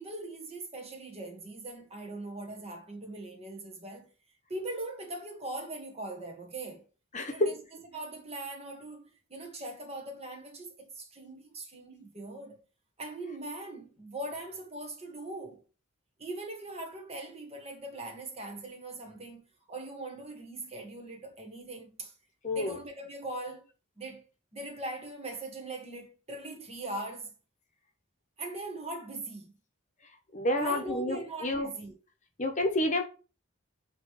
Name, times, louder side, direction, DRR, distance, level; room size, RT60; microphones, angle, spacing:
voice 1, 0.0-4.1 4.5-6.8 7.3-7.6 7.9-12.6 13.0-15.6 16.2-19.4 19.7-22.1 22.5-23.7 24.0-24.2 24.5-27.4 28.4-29.6 30.5-32.0, right 2 dB, 30° right, 1.5 m, -41 dB
voice 2, 7.1-7.5 22.4-22.8 30.3-31.7 32.4-33.0, left 1 dB, 40° left, 1.0 m, -29 dB
7.8 x 3.2 x 4.7 m
head